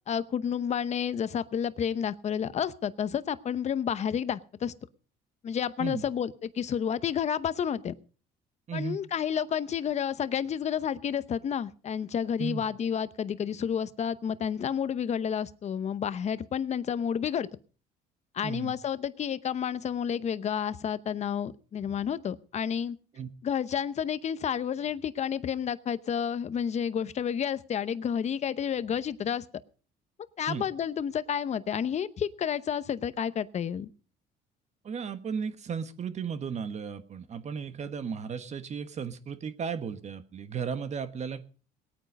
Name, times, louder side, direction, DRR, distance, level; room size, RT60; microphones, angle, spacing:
voice 1, 0.1-4.7 5.4-7.9 8.7-17.5 18.3-23.0 23.4-29.5 30.4-33.9, left 8 dB, 40° left, 15 dB, 0.8 m, -30 dB
voice 2, 8.7-9.0 12.4-12.6 18.4-18.7 23.2-23.3 30.5-30.6 34.8-41.4, right 6 dB, 40° right, 10 dB, 1.4 m, -35 dB
19.0 x 9.1 x 5.2 m, 0.39 s
cardioid pair, 110°, 17 cm